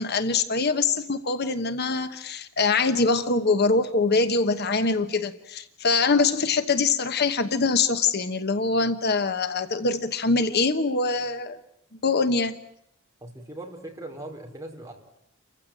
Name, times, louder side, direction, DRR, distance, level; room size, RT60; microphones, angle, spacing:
voice 1, 0.0-11.6 12.0-12.5, left 4 dB, 50° left, 10 dB, 1.1 m, -23 dB
voice 2, 13.2-14.9, right 1 dB, 15° right, 1 dB, 4.8 m, -39 dB
29.5 x 15.5 x 9.0 m, 0.78 s
head